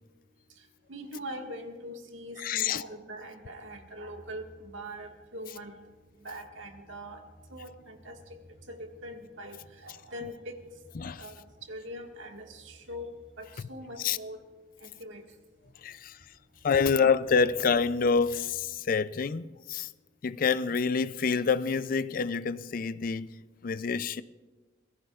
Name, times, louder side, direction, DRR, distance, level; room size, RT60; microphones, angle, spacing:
voice 1, 0.9-5.8 6.2-7.2 7.5-8.2 8.7-10.6 11.2-13.1 13.4-14.4 14.8-15.2 16.7-16.8, equal, 90° right, 1.7 m, -42 dB
sound 1, 2.1-18.8, equal, 50° right, 3.2 m, -59 dB
voice 2, 2.4-2.8 11.0-11.3 14.0-14.2 15.8-16.2 16.6-19.9 20.2-23.3 23.6-24.2, left 5 dB, 45° left, 0.4 m, -27 dB
25.5 x 18.0 x 2.4 m
head